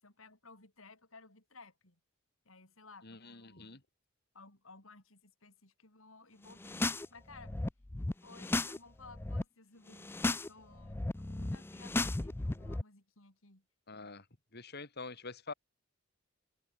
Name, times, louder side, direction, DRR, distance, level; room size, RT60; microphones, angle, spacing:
voice 1, 0.0-2.0 2.4-3.8 4.3-7.6 8.2-10.1 10.5-13.6, left 3 dB, 85° left, 6.6 m, -57 dB
voice 2, 3.0-3.8 13.9-14.2 14.5-15.5, left 3 dB, 50° left, 3.0 m, -46 dB
sound 1, 6.5-7.1 7.3-8.8 9.0-9.4 9.9-10.5 10.7-12.8, left 2 dB, 10° left, 0.4 m, -35 dB
head